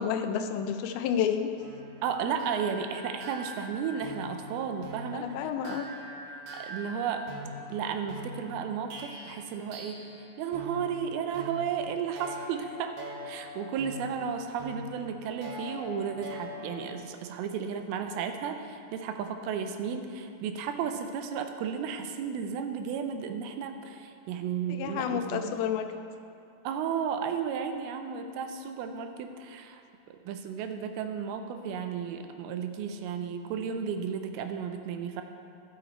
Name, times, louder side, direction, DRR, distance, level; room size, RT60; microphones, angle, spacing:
voice 1, 0.0-1.5 5.1-5.9 24.7-25.9, left 8 dB, 85° left, 7 dB, 2.4 m, -30 dB
sound 1, 1.6-10.3 10.5-17.0, equal, 65° right, 2.1 m, -43 dB
voice 2, 2.0-5.8 6.5-7.3 7.7-10.0 10.4-13.0 13.2-25.6 26.6-29.8 30.1-35.2, right 7 dB, 85° right, 7 dB, 2.5 m, -33 dB
12.0 x 6.5 x 4.3 m, 2.5 s
omnidirectional pair, 4.4 m